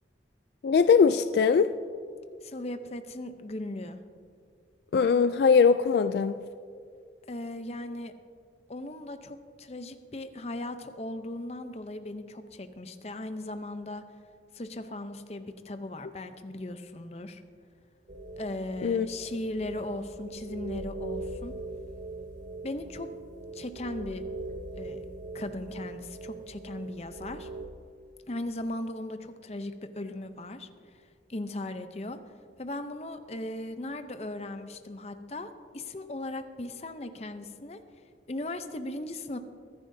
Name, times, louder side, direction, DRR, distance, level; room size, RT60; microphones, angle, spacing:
voice 1, 0.6-1.7 4.9-6.4 18.8-19.1, left 5 dB, 65° left, 11 dB, 0.3 m, -21 dB
voice 2, 2.4-4.0 7.3-8.1 8.7-14.0 14.5-17.4 18.4-21.5 22.6-23.1 23.5-24.2 24.8-25.0 25.3-27.5 28.3-30.7 31.3-32.2 32.6-37.8 38.3-39.4, left 1 dB, 35° left, 9 dB, 0.6 m, -37 dB
sound 1, 18.1-27.6, right 2 dB, 45° right, 0.8 m, -41 dB
23.5 x 10.5 x 2.7 m, 2.2 s
head